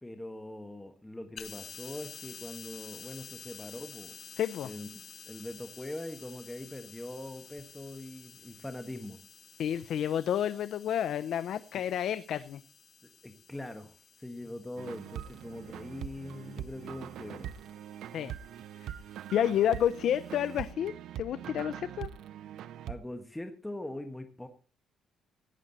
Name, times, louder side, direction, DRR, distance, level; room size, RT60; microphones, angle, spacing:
voice 1, 0.0-4.2 4.6-4.9 5.3-9.2 13.0-17.5 22.9-24.5, left 1 dB, 10° left, 6 dB, 1.5 m, -42 dB
sound 1, 1.4-20.7, left 7 dB, 50° left, 1.8 m, -52 dB
voice 2, 4.4-4.7 9.6-12.6 18.1-18.3 18.8-18.9 19.3-22.1, left 10 dB, 65° left, 14 dB, 0.6 m, -30 dB
sound 2, 14.8-23.0, right 11 dB, 70° right, 0.7 m, -43 dB
16.5 x 9.7 x 4.1 m, 0.37 s
cardioid pair, 120°, 0 cm